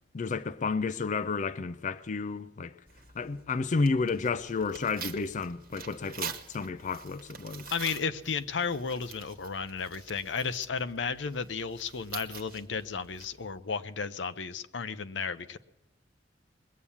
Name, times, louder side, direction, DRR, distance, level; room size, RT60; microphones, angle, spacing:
voice 1, 0.1-2.7 3.2-7.7, left 4 dB, 45° left, 0.4 m, -31 dB
Tearing, 2.9-13.6, right 7 dB, 50° right, 1.2 m, -46 dB
voice 2, 7.7-15.6, left 5 dB, 85° left, 0.7 m, -33 dB
21.0 x 8.4 x 7.2 m
head